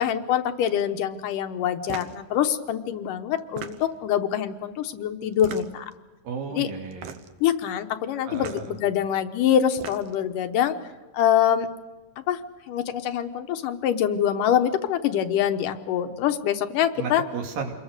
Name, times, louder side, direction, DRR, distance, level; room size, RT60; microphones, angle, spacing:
voice 1, 0.0-5.9 6.5-6.7 7.4-10.8 11.1-11.7 12.3-12.4 12.7-17.2, left 9 dB, 75° left, 8 dB, 2.6 m, -24 dB
sound 1, 1.8-2.2 3.4-4.1 5.3-5.9 6.9-7.4 8.3-8.7 9.6-10.3, right 8 dB, 65° right, 1.7 m, -38 dB
voice 2, 6.2-7.2 8.2-8.7 17.0-17.7, right 5 dB, 85° right, 2 dB, 4.2 m, -33 dB
27.5 x 22.0 x 6.6 m, 1.2 s
omnidirectional pair, 3.9 m